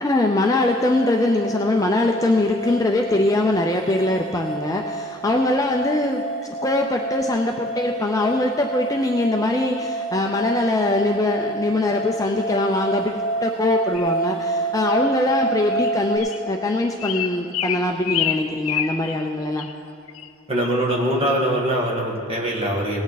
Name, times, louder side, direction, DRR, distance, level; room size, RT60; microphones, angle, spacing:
voice 1, 0.0-6.2 6.6-19.7, left 2 dB, 15° left, 2 dB, 0.5 m, -22 dB
sound 1, 0.6-16.2, right 3 dB, ahead, 1.8 m, -29 dB
sound 2, 13.9-14.2 15.0-15.1 15.7-15.9 16.2-16.4 17.0-19.2 19.6-19.7 20.1-20.3 20.6-20.8, left 10 dB, 75° left, 0.5 m, -27 dB
voice 2, 20.5-23.0, right 1 dB, 25° right, -1 dB, 1.6 m, -22 dB
18.5 x 8.7 x 4.0 m, 2.8 s
head